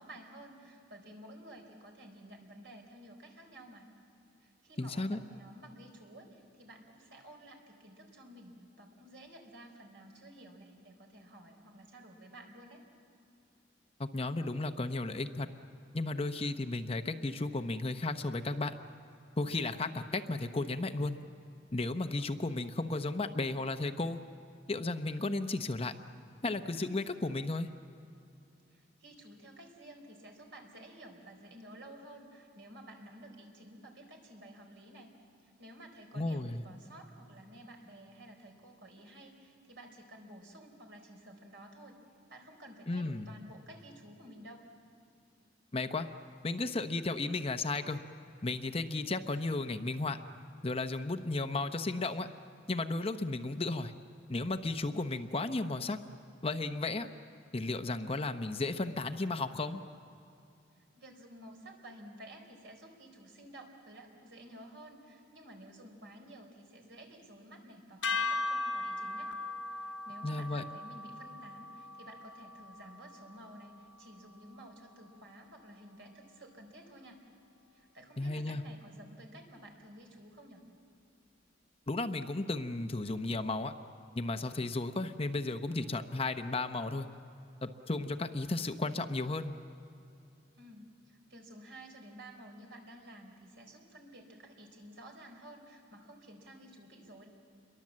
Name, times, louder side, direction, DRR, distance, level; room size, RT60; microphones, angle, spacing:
voice 1, 0.0-3.9 4.4-12.8 28.7-35.1 35.4-42.0 42.3-44.6 60.8-69.3 69.7-77.2 77.7-80.6 90.5-97.3, right 1 dB, 65° right, 2 dB, 4.1 m, -52 dB
voice 2, 4.8-5.2 14.0-15.5 15.9-18.7 19.4-21.2 21.7-24.2 24.7-25.9 26.4-27.7 36.1-36.6 42.9-43.3 45.7-46.1 46.4-48.0 48.4-50.2 50.6-52.3 52.7-53.9 54.3-56.0 56.4-57.1 57.5-59.8 70.2-70.6 78.2-78.6 81.9-83.7 84.1-87.1 87.6-89.6, left 2 dB, 30° left, 8 dB, 0.8 m, -34 dB
sound 1, 68.0-74.4, left 3 dB, 70° left, 1.5 m, -38 dB
28.5 x 23.0 x 7.5 m, 2.7 s
head